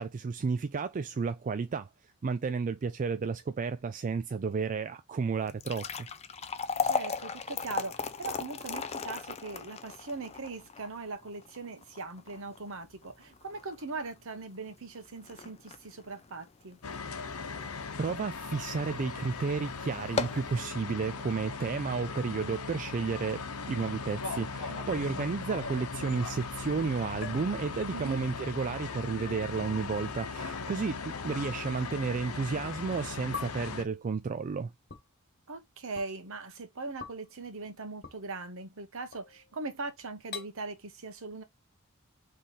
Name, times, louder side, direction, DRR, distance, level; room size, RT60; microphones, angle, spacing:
voice 1, 0.0-1.9 2.2-6.1 18.0-34.7, right 5 dB, 35° right, 0.3 m, -32 dB
sound 1, 5.4-17.7 18.1-18.2 18.9-19.1 19.4-19.5 20.0-20.5, left 5 dB, 30° left, 0.5 m, -37 dB
voice 2, 6.8-16.8 24.7-25.3 27.9-28.2 35.5-41.4, right 3 dB, 65° right, 1.1 m, -40 dB
sound 2, 16.8-33.8, left 4 dB, 85° left, 0.8 m, -39 dB
sound 3, 25.5-26.2 27.2-28.1 28.4-28.8 29.8-29.9 30.7-30.8 32.4-32.5 33.3-33.8 34.9-35.0 35.9-36.1 37.0-37.3 38.0-38.2 39.1-39.6 40.3-40.5, left 7 dB, 45° left, 1.5 m, -45 dB
3.8 x 3.3 x 4.1 m
head